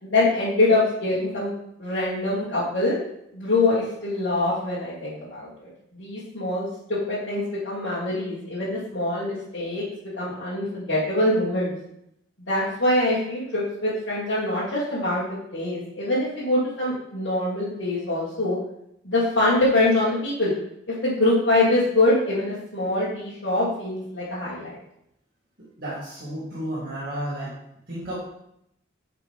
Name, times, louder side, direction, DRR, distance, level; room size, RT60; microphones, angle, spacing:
voice 1, 0.0-1.5 1.8-3.0 3.3-9.8 10.1-11.7 12.5-18.6 19.0-20.5 20.9-24.8, left 2 dB, 65° left, -9 dB, 1.9 m, -24 dB
voice 2, 25.6-27.5 27.9-28.1, right 1 dB, 50° right, -9 dB, 2.1 m, -32 dB
9.3 x 4.8 x 3.6 m, 0.78 s
head